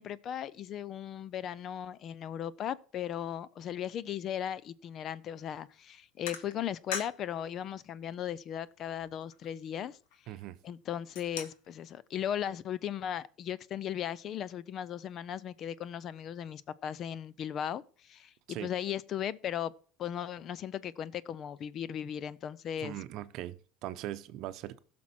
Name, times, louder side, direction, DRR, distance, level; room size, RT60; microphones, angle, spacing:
voice 1, 0.0-10.0 10.6-19.7 20.0-23.0, left 10 dB, 45° left, 0.5 m, -37 dB
sound 1, 5.4-5.6 6.3-7.4 7.8-7.9 8.4-8.5 8.8-10.5 10.9-11.8, left 7 dB, 85° left, 1.3 m, -42 dB
voice 2, 10.3-10.6 18.5-18.7 22.8-24.8, right 13 dB, 60° right, 0.7 m, -40 dB
15.5 x 6.0 x 4.3 m
supercardioid pair, 110°, 0 cm